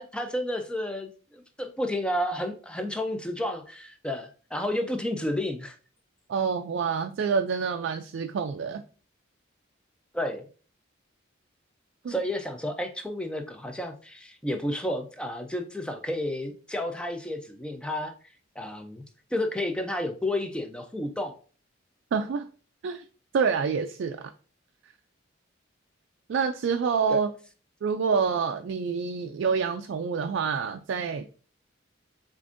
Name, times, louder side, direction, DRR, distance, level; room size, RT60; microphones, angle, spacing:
voice 1, 0.0-5.8 10.1-10.4 12.1-18.1 18.6-19.0 19.3-21.4 27.1-27.2, left 1 dB, 5° left, 0.4 m, -31 dB
voice 2, 6.3-8.8 12.0-12.1 22.1-22.5 22.8-23.0 23.3-24.3 26.3-27.3 27.8-31.2, right 5 dB, 60° right, 0.3 m, -27 dB
6.9 x 2.5 x 2.5 m
head